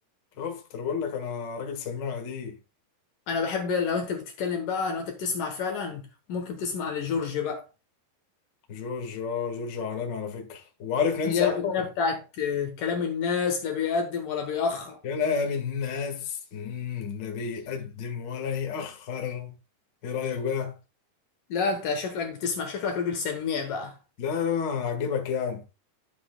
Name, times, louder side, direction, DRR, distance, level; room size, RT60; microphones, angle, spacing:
voice 1, 0.4-2.6 8.7-11.7 15.0-19.5 20.0-20.7 24.2-25.6, left 6 dB, 45° left, 1.6 m, -30 dB
voice 2, 3.3-7.7 11.2-15.0 21.5-24.0, left 5 dB, 65° left, 2.5 m, -29 dB
12.0 x 7.5 x 2.3 m
omnidirectional pair, 4.9 m